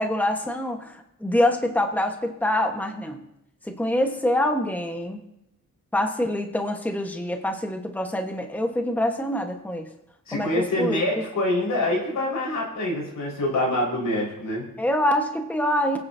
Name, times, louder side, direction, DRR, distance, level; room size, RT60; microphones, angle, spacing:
voice 1, 0.0-3.3 3.6-5.2 5.9-9.9 10.3-10.5 10.8-11.0 14.8-16.0, left 1 dB, 5° left, 4 dB, 1.2 m, -25 dB
voice 2, 10.3-14.7, left 1 dB, 80° left, -2 dB, 4.8 m, -25 dB
22.5 x 9.6 x 2.7 m, 0.83 s
cardioid pair, 85°, 31 cm